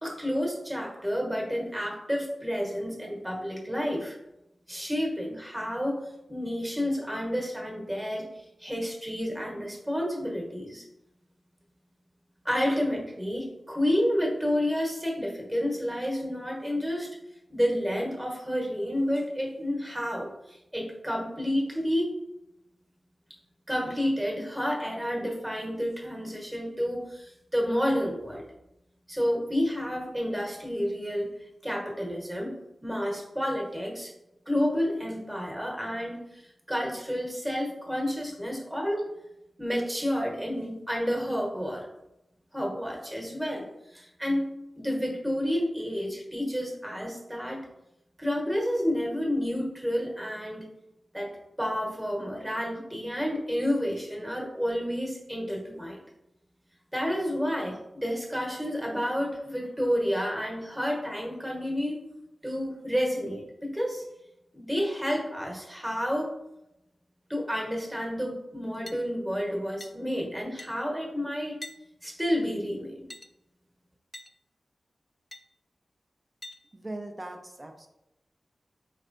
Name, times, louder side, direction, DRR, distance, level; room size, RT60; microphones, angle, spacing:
voice 1, 0.0-4.2 4.7-8.3 8.6-10.8 12.4-17.1 17.5-22.1 23.7-28.4 29.1-31.3 31.6-32.5 32.8-34.1 34.5-36.4 36.7-39.1 39.6-41.9 42.5-43.6 43.9-47.6 48.2-50.6 51.1-51.3 51.6-56.0 56.9-62.0 62.4-64.0 64.5-66.3 67.3-71.6 72.0-73.1, equal, 10° right, -1 dB, 1.2 m, -30 dB
sound 1, 68.9-69.0 69.8-69.9 70.6-70.7 71.6-71.8 73.1-73.3 74.1-74.3 75.3-75.4 76.4-76.6, left 1 dB, 25° left, 0.3 m, -42 dB
voice 2, 76.7-77.9, right 1 dB, 30° right, 4 dB, 0.6 m, -39 dB
4.3 x 3.2 x 2.6 m, 0.89 s
cardioid pair, 50°, 0 cm